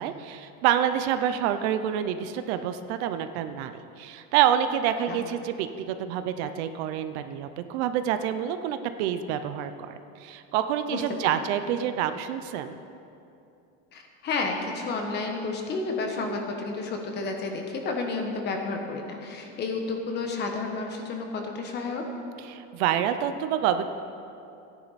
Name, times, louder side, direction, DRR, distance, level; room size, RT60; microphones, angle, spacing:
voice 1, 0.0-12.8 22.5-23.8, right 10 dB, 75° right, 10 dB, 0.7 m, -27 dB
voice 2, 10.9-11.5 13.9-22.1, left 3 dB, 30° left, 3 dB, 1.3 m, -31 dB
14.5 x 10.0 x 4.2 m, 2.7 s
cardioid pair, 170°, 33 cm